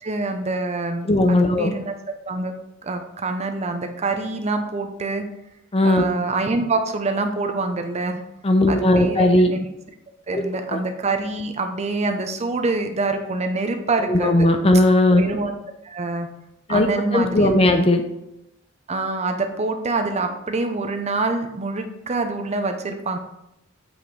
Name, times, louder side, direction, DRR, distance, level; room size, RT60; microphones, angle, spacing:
voice 1, 0.0-1.9 2.3-2.5 2.8-5.2 5.8-8.2 8.7-9.7 10.3-14.5 15.2-15.5 15.8-16.3 16.7-17.6 18.9-23.2, right 3 dB, 30° right, 6 dB, 0.6 m, -25 dB
voice 2, 1.0-1.7 5.7-6.0 8.4-9.5 10.3-10.4 10.7-10.8 14.1-15.2 16.7-16.9 17.1-18.0, left 1 dB, 30° left, 7 dB, 0.6 m, -17 dB
8.3 x 5.2 x 3.2 m, 0.85 s
head